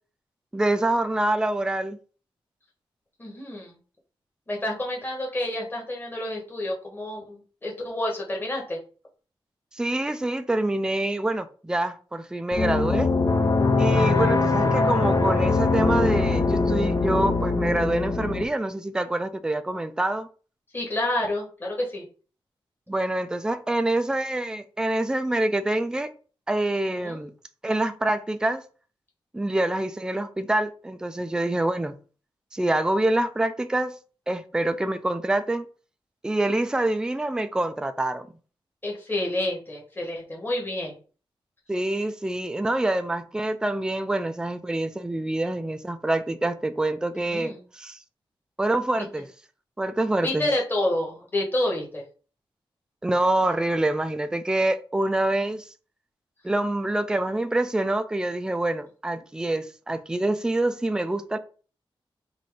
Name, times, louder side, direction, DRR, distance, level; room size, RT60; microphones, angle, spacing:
voice 1, 0.5-2.0 9.7-13.1 13.8-20.3 22.9-26.1 26.5-27.3 27.6-28.6 29.3-32.0 32.5-33.9 34.3-35.7 36.2-38.3 41.7-48.0 48.6-49.3 49.8-50.5 53.0-55.7 56.4-61.4, right 1 dB, 10° right, 0.4 m, -26 dB
voice 2, 3.2-3.7 4.5-8.8 14.0-14.3 20.7-22.0 27.0-27.2 38.8-40.9 47.3-47.6 50.2-52.0, left 1 dB, 20° left, 1.2 m, -29 dB
sound 1, 12.5-18.4, left 3 dB, 40° left, 0.6 m, -22 dB
4.2 x 2.6 x 4.7 m
wide cardioid pair, 150°, 9 cm